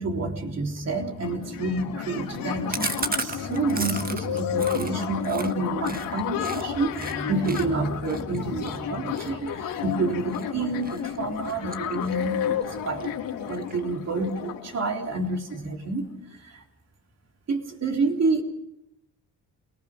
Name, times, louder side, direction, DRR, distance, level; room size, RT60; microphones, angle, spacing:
voice 1, 0.0-13.1 13.5-16.1 16.4-16.6 17.5-18.4, right 3 dB, 50° right, 2 dB, 3.6 m, -28 dB
sound 1, 0.7-0.8 1.0-15.6, left 9 dB, 85° left, 3.0 m, -32 dB
Chewing mastication, 2.7-6.6 6.9-7.1 7.4-10.4 10.8-11.2 11.4-12.3 12.6-12.7 13.0-13.1 13.4-14.0, right 4 dB, 25° right, 1.5 m, -34 dB
28.5 x 19.5 x 5.2 m, 0.83 s
cardioid pair, 85°, 33 cm